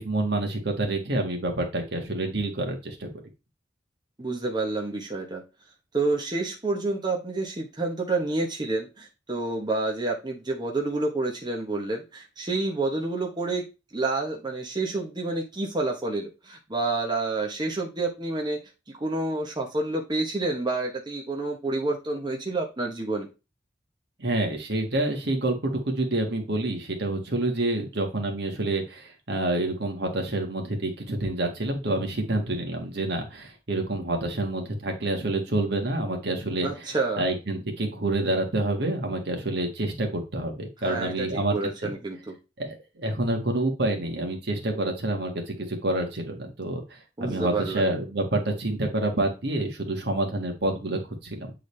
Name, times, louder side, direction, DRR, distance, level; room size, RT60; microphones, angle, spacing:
voice 1, 0.0-3.1 24.2-36.7 37.2-41.6 41.8-41.9 42.6-46.8 47.2-51.5, right 2 dB, 65° right, 3 dB, 1.6 m, -28 dB
voice 2, 4.2-5.4 5.9-13.7 13.9-18.6 18.9-23.3 36.6-37.3 40.8-42.4 47.2-47.9, right 2 dB, 25° right, 1 dB, 1.0 m, -29 dB
8.4 x 3.8 x 3.2 m, 0.28 s
head